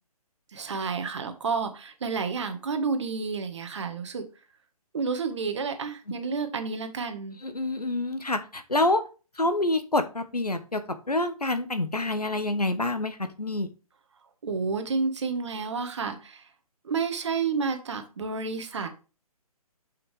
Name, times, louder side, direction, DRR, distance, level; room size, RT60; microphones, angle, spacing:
voice 1, 0.5-4.2 4.9-7.4 14.4-16.4 16.8-19.0, right 5 dB, 50° right, 7 dB, 1.5 m, -30 dB
voice 2, 7.4-9.0 9.4-13.7, left 2 dB, 85° left, 9 dB, 1.1 m, -27 dB
7.5 x 5.7 x 3.3 m, 0.34 s
figure-of-eight pair, 135°, 19 cm